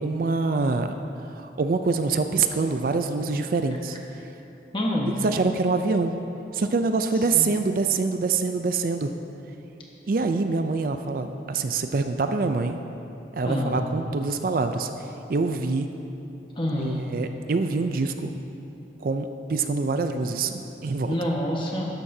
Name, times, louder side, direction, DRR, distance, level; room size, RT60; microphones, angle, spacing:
voice 1, 0.0-0.9 1.3-4.0 5.1-6.2 6.5-9.1 10.1-12.8 13.3-15.9 16.8-18.4 19.0-21.1, right 4 dB, 50° right, 7 dB, 0.4 m, -25 dB
voice 2, 4.7-5.1 7.3-7.5 13.4-13.8 16.6-17.0 21.1-21.9, left 1 dB, 25° left, -2 dB, 1.3 m, -26 dB
13.0 x 11.0 x 2.7 m, 3.0 s
head